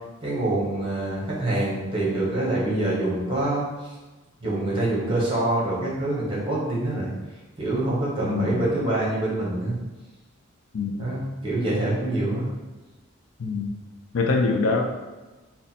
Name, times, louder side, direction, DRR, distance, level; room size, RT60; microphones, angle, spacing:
voice 1, 0.2-3.9 4.4-7.1 7.6-9.8 11.0-12.5, right 2 dB, 25° right, -6 dB, 1.2 m, -25 dB
voice 2, 8.2-8.7 10.7-11.1 13.4-13.7 14.1-14.8, left 3 dB, 75° left, 3 dB, 0.4 m, -24 dB
3.9 x 2.2 x 4.1 m, 1.2 s
head